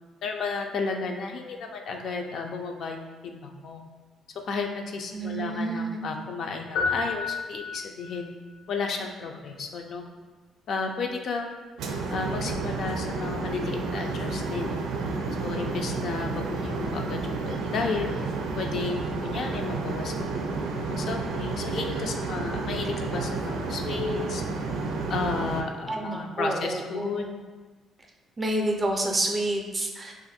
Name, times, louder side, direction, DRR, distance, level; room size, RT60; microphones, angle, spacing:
voice 1, 0.2-3.8 4.5-8.3 8.7-10.0 10.7-11.5 12.1-14.7 15.4-18.1 18.6-20.5 20.8-24.4 25.1-27.3, left 4 dB, 60° left, 3 dB, 0.4 m, -33 dB
voice 2, 5.1-6.0 25.9-27.3 28.4-30.1, right 1 dB, 25° right, 2 dB, 0.4 m, -29 dB
sound 1, 6.7-8.2, left 4 dB, 90° left, 0.7 m, -30 dB
sound 2, 11.8-25.6, right 3 dB, 85° right, 0.4 m, -31 dB
2.5 x 2.5 x 4.0 m, 1.3 s
cardioid pair, 115°, 0 cm